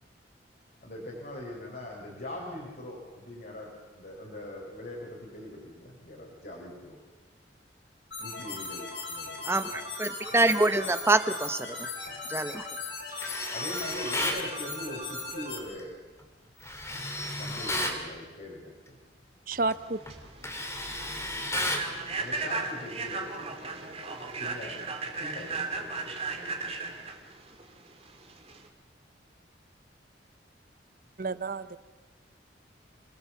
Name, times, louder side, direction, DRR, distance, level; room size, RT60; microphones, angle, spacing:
voice 1, 0.8-7.0 8.2-9.8 12.0-12.2 13.2-15.9 17.2-19.0 21.0-21.5 22.2-24.8 25.2-26.2, left 1 dB, 55° left, 4.4 m, -42 dB
sound 1, 8.1-15.6, left 3 dB, 70° left, 6.1 m, -38 dB
voice 2, 9.4-11.7 12.3-12.7, right 2 dB, 15° right, 0.9 m, -25 dB
Tools, 13.2-14.4 16.6-18.0 19.5-19.7 20.1-21.9, left 1 dB, 15° left, 2.7 m, -33 dB
voice 3, 19.5-20.0 31.2-31.8, right 3 dB, 50° right, 0.8 m, -30 dB
Human voice / Train, 19.8-28.7, right 4 dB, 35° right, 2.5 m, -36 dB
27.5 x 18.5 x 7.2 m
head